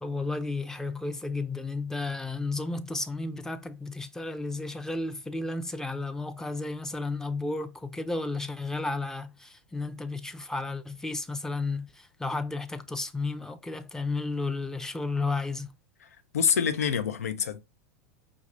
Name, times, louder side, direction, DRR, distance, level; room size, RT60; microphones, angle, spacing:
voice 1, 0.0-15.7, left 3 dB, 5° left, 0.5 m, -33 dB
voice 2, 16.0-17.6, left 7 dB, 80° left, 0.6 m, -27 dB
5.2 x 2.4 x 3.2 m
hypercardioid pair, 95°, 8 cm